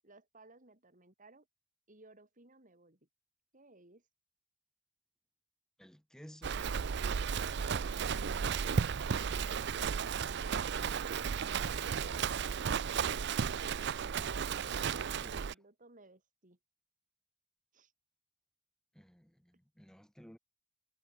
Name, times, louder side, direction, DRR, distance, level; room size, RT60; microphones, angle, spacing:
voice 1, 0.0-1.5 1.9-3.0 3.5-4.1 15.3-16.6 17.7-17.9, right 2 dB, 40° right, 4.0 m, -60 dB
voice 2, 5.8-6.6 14.8-15.4 18.9-20.4, equal, 5° left, 1.2 m, -56 dB
Livestock farm animals working animals, 6.4-15.5, right 6 dB, 60° right, 0.5 m, -34 dB
head